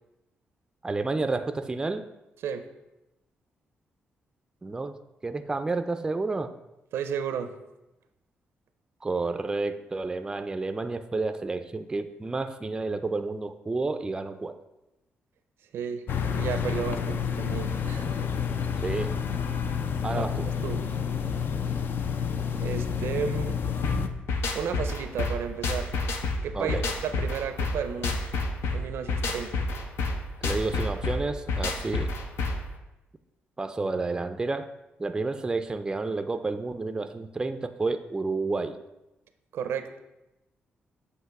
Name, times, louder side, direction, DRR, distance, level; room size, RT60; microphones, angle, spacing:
voice 1, 0.8-2.1 4.6-5.0 5.2-6.5 9.0-14.6 18.8-19.1 20.0-20.5 26.5-26.9 30.4-32.1 33.6-34.7 35.0-38.8, right 3 dB, 20° right, 9 dB, 0.4 m, -30 dB
voice 2, 6.9-7.5 15.7-16.0 16.3-18.2 20.1-20.3 20.6-20.9 22.6-23.6 24.5-25.9 26.4-28.2 28.7-29.6 39.5-40.0, right 7 dB, 90° right, 9 dB, 0.6 m, -33 dB
sound 1, 16.1-24.1, left 7 dB, 60° left, 0.4 m, -29 dB
sound 2, 23.8-32.7, left 3 dB, 85° left, 0.8 m, -29 dB
7.9 x 2.9 x 5.8 m, 0.95 s
cardioid pair, 115°, 4 cm